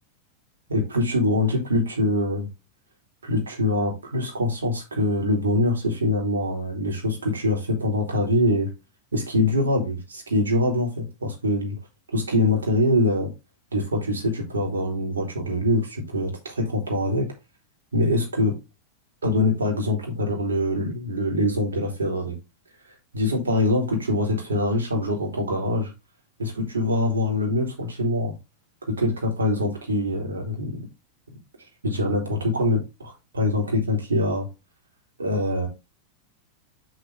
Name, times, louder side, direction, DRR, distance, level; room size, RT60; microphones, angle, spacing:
voice 1, 0.7-2.5 3.2-8.7 9.1-11.8 12.1-13.3 13.7-17.3 17.9-18.6 19.2-22.4 23.1-25.9 26.4-28.3 28.9-30.9 31.8-34.5 35.2-35.7, left 1 dB, 70° right, 3.0 m, -24 dB
6.9 x 5.9 x 3.5 m
figure-of-eight pair, 90°, 0 cm